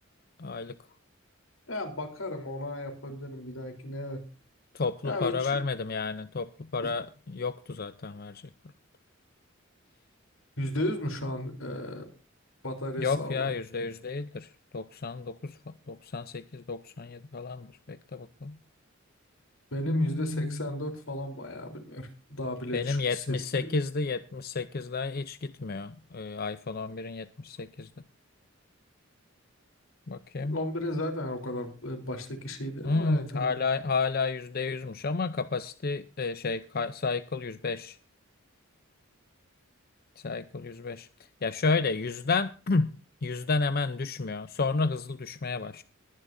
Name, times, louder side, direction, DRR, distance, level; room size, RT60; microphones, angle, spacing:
voice 1, 0.4-0.8 4.7-8.4 13.0-18.6 19.9-20.6 22.7-27.9 30.1-30.6 32.8-38.0 40.2-41.1 41.4-42.9 43.2-45.8, left 4 dB, 50° left, 0.6 m, -31 dB
voice 2, 1.7-4.2 5.0-5.6 10.6-12.0 12.6-13.5 19.7-23.7 30.5-33.6, left 1 dB, 80° left, 3.8 m, -34 dB
21.5 x 11.0 x 2.7 m
head